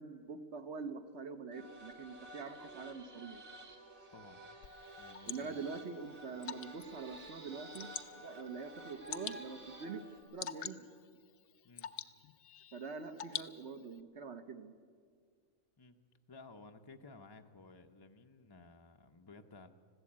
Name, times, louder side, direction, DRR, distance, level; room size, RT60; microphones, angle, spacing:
voice 1, 0.0-3.4 5.3-7.9 8.2-10.0 10.3-10.9 12.7-14.7, right 5 dB, 60° right, 9 dB, 1.3 m, -44 dB
sound 1, 1.5-10.2, right 1 dB, 85° right, 3.0 m, -52 dB
voice 2, 4.1-4.4 5.0-5.6 11.6-11.9 15.8-16.0 16.3-19.7, left 3 dB, 25° left, 5 dB, 0.6 m, -56 dB
Water / Drip, 4.6-14.0, left 9 dB, 75° left, 1.1 m, -48 dB
21.0 x 15.0 x 8.6 m, 2.1 s
omnidirectional pair, 1.4 m